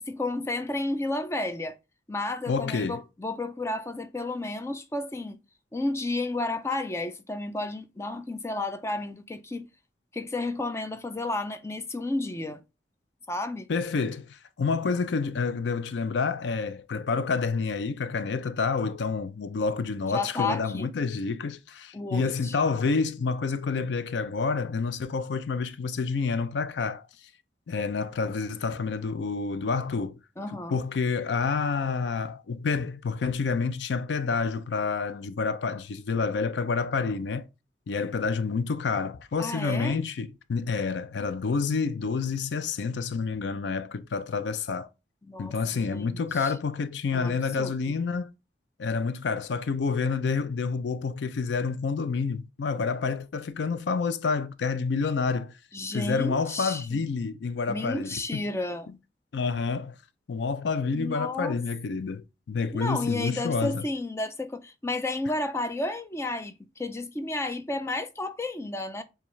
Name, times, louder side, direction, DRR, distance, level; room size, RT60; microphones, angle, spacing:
voice 1, 0.1-1.8 2.1-5.4 5.7-9.7 10.1-12.6 13.3-13.7 20.1-20.9 21.9-22.6 30.4-30.8 39.4-40.0 45.2-46.6 47.1-47.7 55.7-57.0 57.7-58.9 60.9-61.6 62.7-69.0, left 2 dB, 15° left, 0.4 m, -32 dB
voice 2, 2.5-3.0 13.7-27.1 27.7-30.2 30.7-37.5 37.9-44.9 45.4-48.3 48.8-55.5 55.9-58.4 59.3-60.0 60.3-63.8, left 4 dB, 90° left, 0.4 m, -28 dB
6.9 x 2.4 x 3.1 m
head